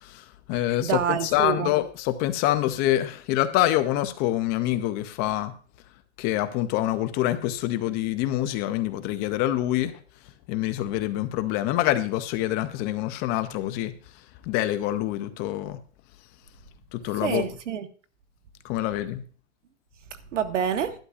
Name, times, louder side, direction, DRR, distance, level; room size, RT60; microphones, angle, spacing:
voice 1, 0.0-5.5 6.2-9.9 10.5-13.9 14.5-15.8 16.9-17.5 18.6-19.2, left 14 dB, 25° left, 0.5 m, -26 dB
voice 2, 0.8-1.7 17.2-17.9 20.3-20.9, right 9 dB, 85° right, 1.3 m, -27 dB
11.5 x 11.0 x 2.4 m
hypercardioid pair, 145°, 36 cm